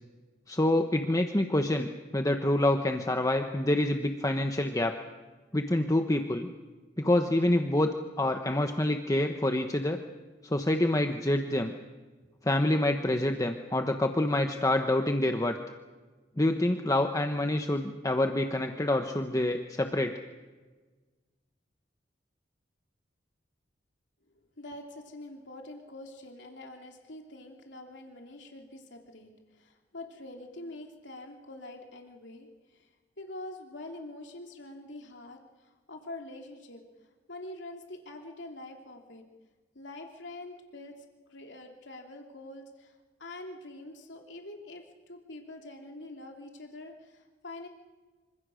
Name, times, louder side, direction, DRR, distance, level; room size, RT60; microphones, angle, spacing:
voice 1, 0.5-1.9 2.1-5.0 5.5-6.5 7.0-7.9 8.2-10.0 10.4-11.7 12.4-15.6 16.4-20.2, left 1 dB, 20° left, 5 dB, 1.2 m, -27 dB
voice 2, 24.6-36.8 37.3-39.2 39.7-41.0 41.3-47.7, left 2 dB, 75° left, 2 dB, 3.2 m, -45 dB
26.5 x 25.5 x 6.5 m, 1.3 s
head